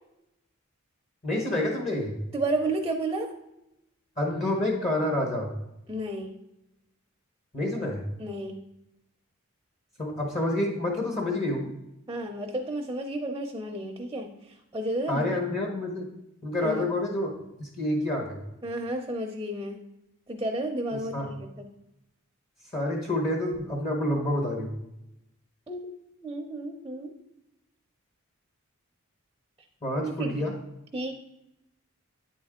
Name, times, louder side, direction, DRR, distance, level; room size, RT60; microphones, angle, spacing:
voice 1, 1.2-2.2 4.2-5.5 7.5-8.0 10.0-11.7 15.1-16.1 16.4-17.3 17.6-18.4 20.9-21.3 22.7-24.7 29.8-30.5, left 1 dB, 35° left, 0 dB, 1.1 m, -28 dB
voice 2, 2.3-3.3 5.9-6.3 8.2-8.6 12.1-14.3 14.7-15.4 16.6-16.9 18.6-19.8 20.3-21.6 25.7-25.8 26.2-27.1 30.0-30.5 30.9-31.1, right 1 dB, 15° right, 3 dB, 0.6 m, -32 dB
9.2 x 4.3 x 3.6 m, 0.88 s
head